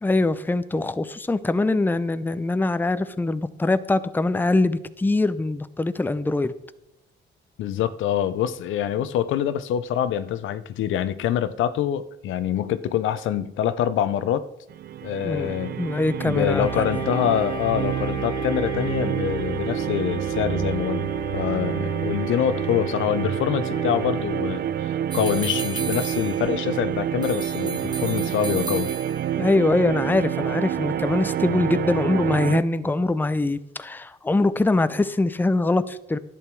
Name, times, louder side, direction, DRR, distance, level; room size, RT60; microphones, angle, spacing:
voice 1, 0.0-6.5 15.2-15.5 15.8-17.0 29.4-36.2, left 2 dB, 10° left, 13 dB, 0.6 m, -23 dB
voice 2, 7.6-14.4 15.0-15.8 16.3-28.9, left 10 dB, 80° left, 13 dB, 0.7 m, -25 dB
sound 1, 14.7-32.6, right 10 dB, 50° right, 0.4 m, -28 dB
Wind instrument woodwind instrument, 16.5-24.5, left 3 dB, 25° left, 1.1 m, -35 dB
sound 2, 25.1-26.8 27.2-29.4, right 3 dB, 20° right, 1.0 m, -35 dB
11.0 x 8.8 x 4.6 m, 0.90 s
cardioid pair, 90°, 20 cm